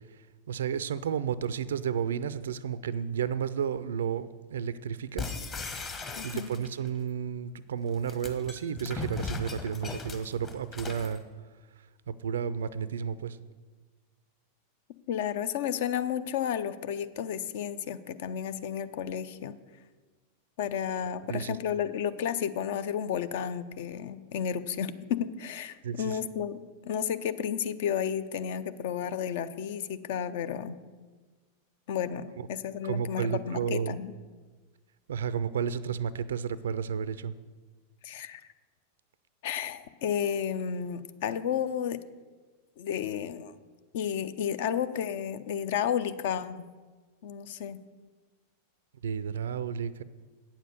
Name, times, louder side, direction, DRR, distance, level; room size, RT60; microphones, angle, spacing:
voice 1, 0.1-5.4 5.7-5.9 6.2-11.2 12.1-13.4 21.3-21.6 25.8-26.2 32.4-32.5 32.8-34.0 35.1-37.3 49.0-50.0, right 7 dB, 65° right, 17 dB, 0.4 m, -32 dB
sound 1, 5.2-6.9 7.9-11.2, left 4 dB, 25° left, 1.2 m, -38 dB
voice 2, 6.2-6.5 15.1-19.5 20.6-30.8 31.9-34.1 38.0-38.4 39.4-42.0 42.8-43.5 43.9-46.7 47.2-47.8, left 8 dB, 55° left, 13 dB, 0.5 m, -32 dB
9.1 x 7.3 x 6.6 m, 1.4 s
figure-of-eight pair, 90°, 0 cm